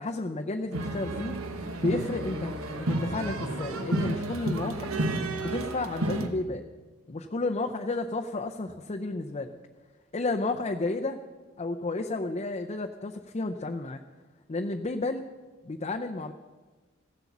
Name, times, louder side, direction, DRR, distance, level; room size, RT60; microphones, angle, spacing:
voice 1, 0.0-1.4 1.8-4.9 5.4-6.6 7.1-9.6 10.1-11.2 11.6-14.0 14.5-15.3 15.6-16.3, left 2 dB, 30° left, 4 dB, 0.5 m, -32 dB
sound 1, 0.7-6.3, right 2 dB, 75° right, 1.2 m, -31 dB
15.0 x 7.9 x 7.2 m, 1.3 s
head